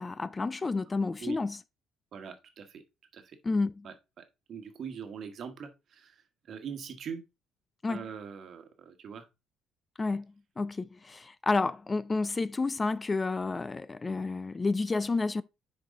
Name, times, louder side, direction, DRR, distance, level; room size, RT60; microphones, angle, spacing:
voice 1, 0.0-1.6 3.4-3.9 7.8-8.0 10.0-10.3 10.6-15.4, left 3 dB, 25° left, 0.4 m, -30 dB
voice 2, 2.1-2.8 3.1-3.4 3.8-6.2 6.5-7.2 7.9-9.2, right 7 dB, 55° right, 1.3 m, -42 dB
6.5 x 4.6 x 3.6 m
supercardioid pair, 80°, 0 cm